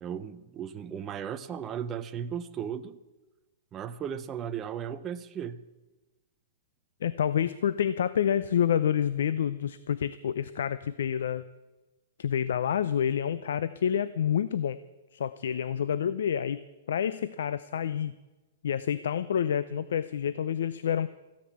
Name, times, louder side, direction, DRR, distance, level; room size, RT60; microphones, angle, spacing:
voice 1, 0.0-3.0 3.7-5.6, right 8 dB, 15° right, 10 dB, 0.6 m, -36 dB
voice 2, 7.0-11.4 12.2-14.8 15.1-18.1 18.6-21.1, left 9 dB, 70° left, 16 dB, 0.6 m, -28 dB
15.0 x 10.5 x 8.6 m, 1.1 s
hypercardioid pair, 170°, 0 cm